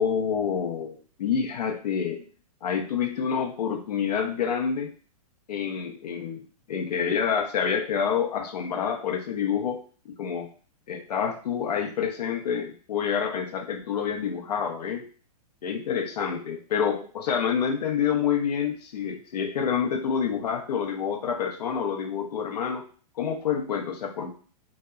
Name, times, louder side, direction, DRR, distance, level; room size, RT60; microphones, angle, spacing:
voice 1, 0.0-2.2 2.6-4.9 5.5-9.8 10.1-10.5 10.9-15.0 15.6-22.9 23.2-24.3, left 7 dB, 90° left, 4 dB, 0.6 m, -28 dB
2.7 x 2.1 x 2.2 m, 0.40 s
hypercardioid pair, 155°, 20 cm